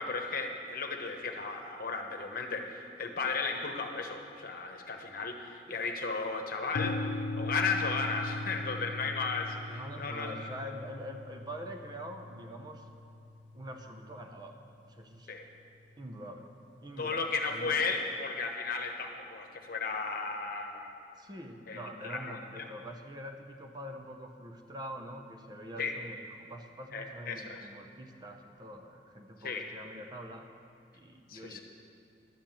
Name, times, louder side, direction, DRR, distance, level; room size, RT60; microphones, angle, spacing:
voice 1, 0.0-10.5 15.3-15.4 17.0-20.9 21.7-22.6 25.8-26.0 26.9-27.6 29.4-29.7 31.3-31.6, left 4 dB, 55° left, 4 dB, 1.1 m, -35 dB
sound 1, 6.7-14.6, left 2 dB, 85° left, 0.4 m, -39 dB
voice 2, 9.7-12.9 13.5-14.5 14.9-15.3 16.0-16.5 16.8-17.2 17.5-17.8 21.2-30.4 30.9-31.6, equal, 25° right, 4 dB, 0.7 m, -44 dB
11.5 x 7.4 x 7.4 m, 2.6 s
head